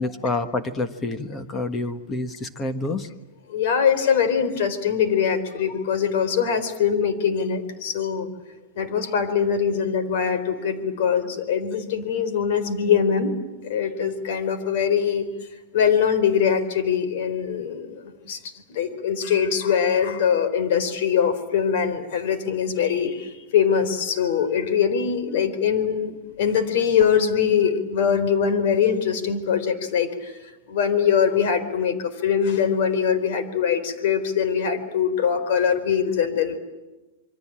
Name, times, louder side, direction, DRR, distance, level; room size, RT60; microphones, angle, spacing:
voice 1, 0.0-3.1, left 2 dB, 15° left, 10 dB, 1.4 m, -28 dB
voice 2, 3.5-8.3 8.8-13.3 13.6-15.3 15.7-18.4 18.7-30.4 30.7-36.6, left 7 dB, 60° left, 11 dB, 4.2 m, -22 dB
27.5 x 23.5 x 8.9 m, 1.1 s
supercardioid pair, 160°, 0 cm